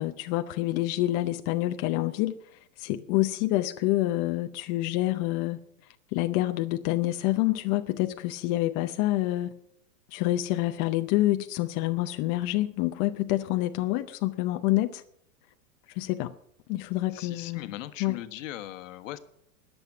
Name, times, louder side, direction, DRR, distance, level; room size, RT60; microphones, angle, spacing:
voice 1, 0.0-2.4 2.8-5.6 6.1-9.5 10.1-15.0 16.0-16.3 16.7-17.7 18.0-18.2, left 16 dB, 35° left, 0.6 m, -27 dB
voice 2, 17.1-19.2, left 13 dB, 65° left, 1.4 m, -39 dB
20.0 x 7.8 x 6.2 m
hypercardioid pair, 140°, 42 cm